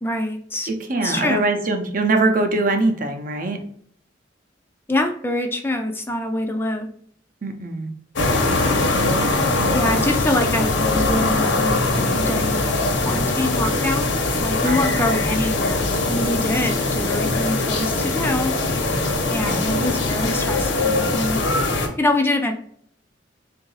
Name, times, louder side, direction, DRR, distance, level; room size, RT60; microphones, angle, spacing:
voice 1, 0.0-1.4 4.9-6.9 9.7-14.1 14.4-18.5 19.3-21.4 22.0-22.5, left 1 dB, 10° left, 5 dB, 0.3 m, -25 dB
voice 2, 0.7-3.6 7.4-7.9 14.6-15.3 19.4-19.6, right 2 dB, 45° right, 6 dB, 0.6 m, -23 dB
sound 1, 8.2-21.9, left 2 dB, 85° left, 0.9 m, -21 dB
3.8 x 2.5 x 3.8 m, 0.63 s
head